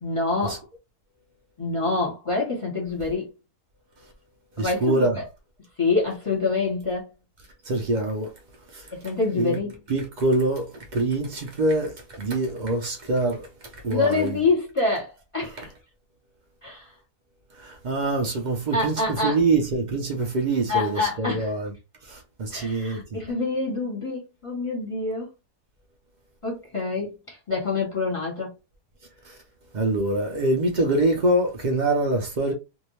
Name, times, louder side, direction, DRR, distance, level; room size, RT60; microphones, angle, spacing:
voice 1, 0.0-0.6 1.6-3.3 4.6-5.2 5.8-7.1 8.9-9.8 13.9-15.7 16.6-16.9 18.7-19.4 20.7-21.5 22.5-25.3 26.4-28.5, left 3 dB, 20° left, 1.1 m, -26 dB
voice 2, 4.6-5.2 7.7-8.3 8.7-8.9 9.3-9.6 9.9-13.5 13.8-14.4 17.6-21.7 22.0-23.2 29.2-29.4 29.7-32.5, right 2 dB, 70° right, 0.4 m, -25 dB
2.7 x 2.5 x 3.1 m
omnidirectional pair, 1.7 m